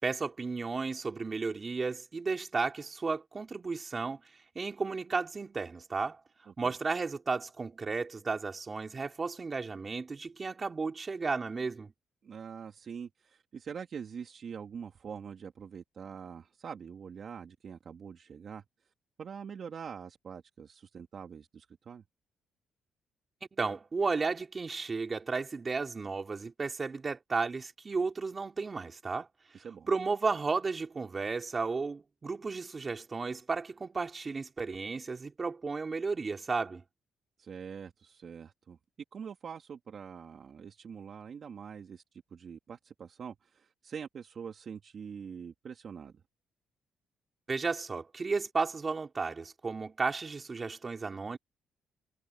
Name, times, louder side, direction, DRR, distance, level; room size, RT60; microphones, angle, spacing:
voice 1, 0.0-4.2 4.6-6.2 6.6-11.9 23.5-29.3 29.6-36.8 47.5-51.4, right 4 dB, 30° right, 4.0 m, -33 dB
voice 2, 12.2-18.6 19.2-22.0 29.5-29.9 37.4-38.8 39.1-46.1, right 7 dB, 50° right, 2.4 m, -44 dB
cardioid pair, 90°, 0 cm